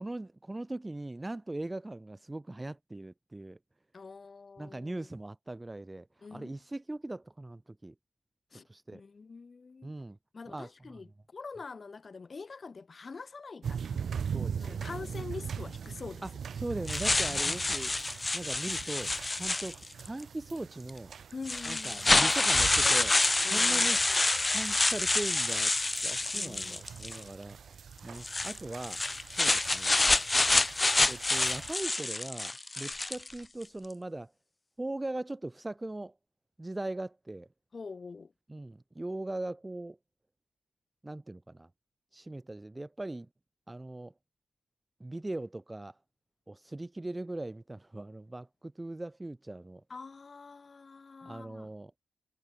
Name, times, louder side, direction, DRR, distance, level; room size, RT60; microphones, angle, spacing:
voice 1, 0.0-3.6 4.6-7.9 8.7-9.0 9.8-10.2 10.5-11.0 14.3-15.1 16.2-16.3 16.6-17.9 18.3-21.1 21.7-23.1 23.5-24.0 24.5-25.7 26.0-29.0 29.4-30.0 31.1-34.3 34.8-36.1 36.6-37.5 38.5-40.0 41.0-41.7 42.1-43.3 43.7-44.1 45.0-45.9 46.5-49.8 51.2-51.9, right 2 dB, 15° right, 2.7 m, -40 dB
voice 2, 3.9-5.1 6.2-6.5 8.5-8.7 8.9-9.9 10.3-14.1 14.6-16.3 17.3-17.6 21.3-22.1 23.4-23.9 26.3-26.8 37.7-38.3 49.9-51.7, left 4 dB, 35° left, 6.1 m, -45 dB
sound 1, 13.6-31.7, right 7 dB, 60° right, 7.0 m, -42 dB
sound 2, 16.9-20.1 20.9-21.0 21.5-27.2 28.2-33.3, left 2 dB, 20° left, 1.1 m, -27 dB
wide cardioid pair, 165°, 0 cm